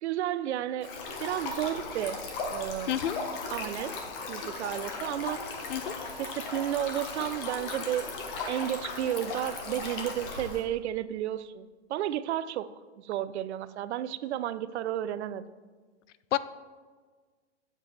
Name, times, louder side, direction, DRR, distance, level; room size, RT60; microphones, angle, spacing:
voice 1, 0.0-2.9 3.5-4.0 4.3-5.5 6.2-8.1 8.5-15.5, right 12 dB, 70° right, 0.5 m, -32 dB
Stream, 0.8-10.6, left 3 dB, 50° left, 1.4 m, -37 dB
voice 2, 2.9-3.2 5.7-6.0 16.3-16.4, left 12 dB, 85° left, 0.5 m, -29 dB
8.3 x 7.3 x 3.2 m
hypercardioid pair, 140°, 35 cm